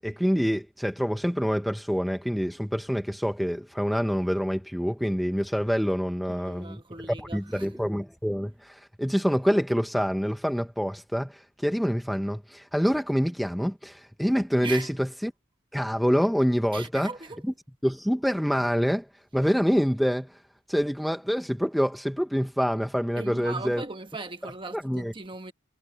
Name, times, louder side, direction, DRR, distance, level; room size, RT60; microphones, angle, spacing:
voice 1, 0.0-6.8 7.1-15.3 15.7-17.1 17.8-19.1 19.3-20.4 20.7-23.8 24.7-25.1, equal, ahead, 0.8 m, -26 dB
voice 2, 6.3-7.8 14.6-14.9 16.7-17.4 23.2-25.5, right 3 dB, 25° right, 1.3 m, -38 dB
head